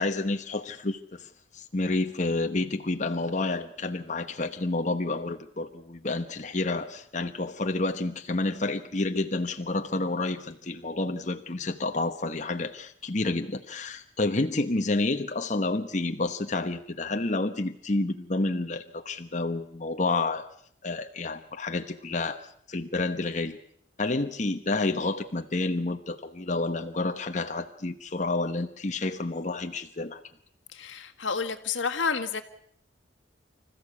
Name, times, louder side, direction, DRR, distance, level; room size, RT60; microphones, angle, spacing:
voice 1, 0.0-20.5 20.8-22.4 22.7-23.6 24.0-30.2, left 2 dB, 40° left, 6 dB, 1.2 m, -29 dB
voice 2, 30.7-32.4, left 5 dB, 90° left, 6 dB, 1.7 m, -30 dB
25.5 x 15.0 x 8.4 m, 0.65 s
head